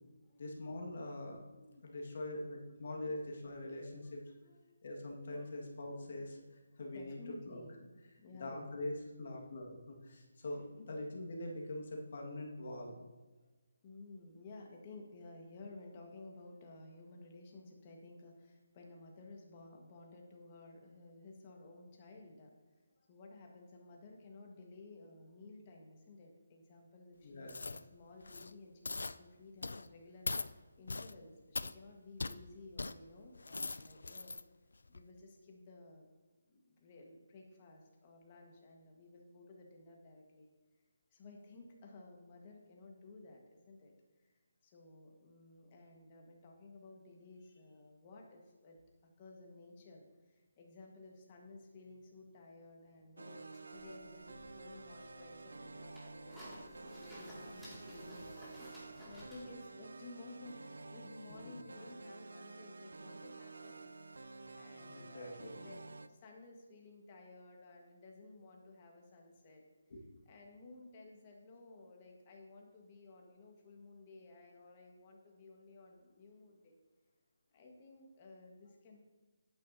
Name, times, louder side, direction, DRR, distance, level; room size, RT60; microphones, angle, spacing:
voice 1, 0.4-4.2 4.8-6.4 6.8-7.2 7.5-7.6 8.3-13.1 27.2-27.6 61.3-61.5 64.8-65.5 69.9-70.0, left 1 dB, 50° left, 0 dB, 1.8 m, -44 dB
voice 2, 3.6-4.6 5.4-5.5 6.9-8.7 10.4-10.5 13.8-22.5 23.0-34.4 34.9-36.1 36.5-40.5 41.1-43.9 44.2-44.3 44.6-56.4 57.0-58.5 59.0-63.9 64.2-69.6 70.3-76.8 77.5-79.0, left 2 dB, 25° left, 1 dB, 1.5 m, -55 dB
sound 1, 27.5-27.8 28.2-28.5 28.8-29.2 29.6-29.9 30.2-30.5 30.9-31.1 31.5-31.7 32.2-32.4 32.8-32.9 33.3-34.4 34.9-35.0, left 3 dB, 80° left, 0.4 m, -40 dB
sound 2, 53.2-66.1, right 3 dB, 80° right, 0.5 m, -51 dB
sound 3, 53.7-59.5, equal, 5° right, 2.3 m, -54 dB
10.5 x 8.9 x 2.8 m, 1.3 s
hypercardioid pair, 165°, 0 cm